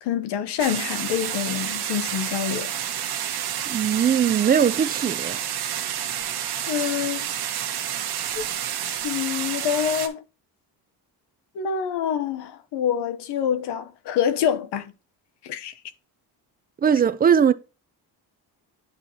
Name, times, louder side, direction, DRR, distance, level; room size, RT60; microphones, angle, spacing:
voice 1, 0.0-2.7 6.7-7.3 8.2-8.4 8.8-10.2 11.5-14.9 15.4-15.7, left 9 dB, 85° left, 0.9 m, -26 dB
sound 1, 0.6-10.1, right 10 dB, 75° right, 1.3 m, -29 dB
voice 2, 3.7-5.4 16.8-17.5, right 8 dB, 25° right, 0.4 m, -20 dB
9.7 x 4.6 x 2.8 m
cardioid pair, 145°, 40 cm